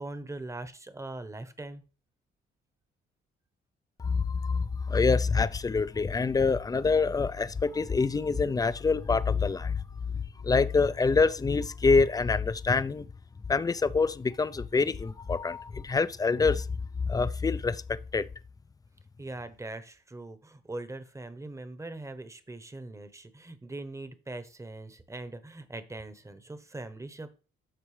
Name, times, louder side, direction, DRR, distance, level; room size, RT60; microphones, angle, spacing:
voice 1, 0.0-1.8 19.2-27.4, right 2 dB, 15° right, 1.0 m, -41 dB
voice 2, 4.0-9.8 10.4-13.1 13.5-16.7 17.0-18.3, left 4 dB, 20° left, 0.4 m, -26 dB
12.5 x 4.4 x 3.3 m
cardioid pair, 90°, 20 cm